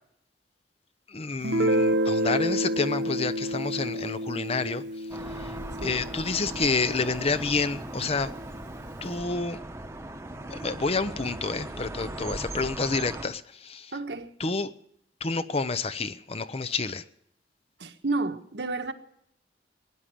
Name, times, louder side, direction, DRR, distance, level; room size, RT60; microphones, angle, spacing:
voice 1, 1.1-4.8 5.4-5.5 5.8-8.3 9.0-9.6 10.4-13.9 14.4-14.7 15.2-17.0, left 4 dB, 35° left, 0.7 m, -29 dB
Guitar, 1.4-6.9, equal, 90° right, 0.8 m, -29 dB
sound 1, 5.1-13.3, right 1 dB, 15° right, 1.0 m, -38 dB
voice 2, 13.9-14.3 17.8-18.9, right 3 dB, 70° right, 1.3 m, -31 dB
18.0 x 10.0 x 7.7 m
head